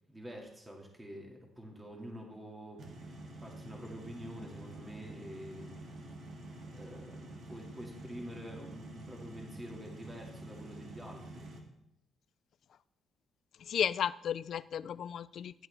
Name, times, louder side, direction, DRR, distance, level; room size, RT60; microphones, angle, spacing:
voice 1, 0.1-2.9 3.4-5.8 6.7-11.5, equal, 15° right, -1 dB, 2.0 m, -47 dB
sound 1, 2.8-11.6, right 1 dB, 65° right, 2.0 m, -48 dB
voice 2, 13.7-15.7, left 9 dB, 65° left, 17 dB, 0.3 m, -34 dB
12.0 x 9.0 x 3.4 m, 0.83 s
cardioid pair, 90°, 0 cm